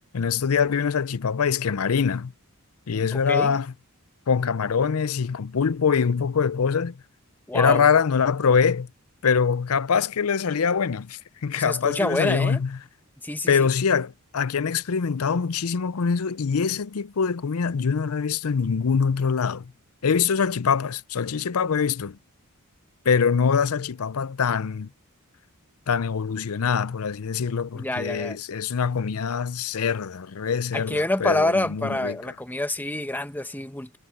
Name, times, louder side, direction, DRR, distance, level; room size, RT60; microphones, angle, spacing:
voice 1, 0.1-2.3 2.9-3.7 4.3-7.0 7.5-8.9 9.2-12.8 13.5-19.7 20.0-22.2 23.0-24.9 25.9-32.2, left 6 dB, 70° left, 0.6 m, -24 dB
voice 2, 7.5-7.8 11.6-12.6 13.2-13.7 27.7-28.4 30.7-34.0, left 1 dB, 10° left, 1.2 m, -27 dB
head